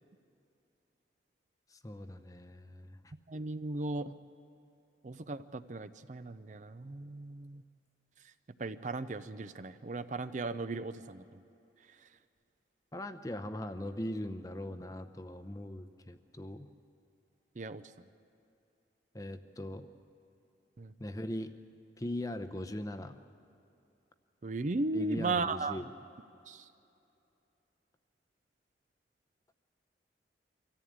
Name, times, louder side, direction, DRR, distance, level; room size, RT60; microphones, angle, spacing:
voice 1, 1.7-3.1 12.9-16.7 19.1-19.9 21.0-21.5 22.0-23.2 24.9-25.9, left 1 dB, 20° left, 9 dB, 0.7 m, -40 dB
voice 2, 3.3-4.1 5.0-7.6 8.6-11.4 17.6-17.8 20.8-20.9 24.4-25.9 26.5-26.7, right 3 dB, 40° right, 12 dB, 0.5 m, -36 dB
24.5 x 14.5 x 8.7 m, 2.7 s
head